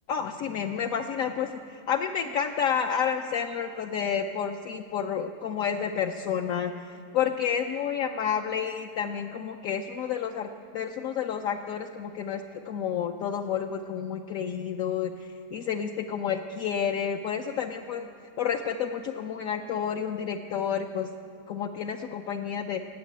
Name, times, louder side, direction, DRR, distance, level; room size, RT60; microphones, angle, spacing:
voice 1, 0.1-18.1 18.4-21.1 21.5-22.9, left 7 dB, 70° left, 4 dB, 1.0 m, -30 dB
18.5 x 8.0 x 9.2 m, 2.5 s
omnidirectional pair, 1.6 m